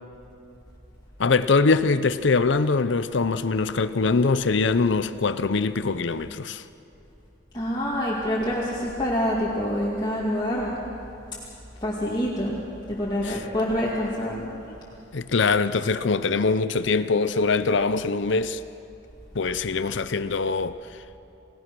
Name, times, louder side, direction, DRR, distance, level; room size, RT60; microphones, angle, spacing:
voice 1, 1.2-6.6 13.2-13.4 14.3-14.8 15.1-18.6 19.3-20.8, left 4 dB, 65° left, 0.6 m, -23 dB
voice 2, 7.5-10.7 11.8-12.6 12.9-14.4, equal, 20° left, 2.3 m, -26 dB
29.0 x 18.0 x 6.1 m
head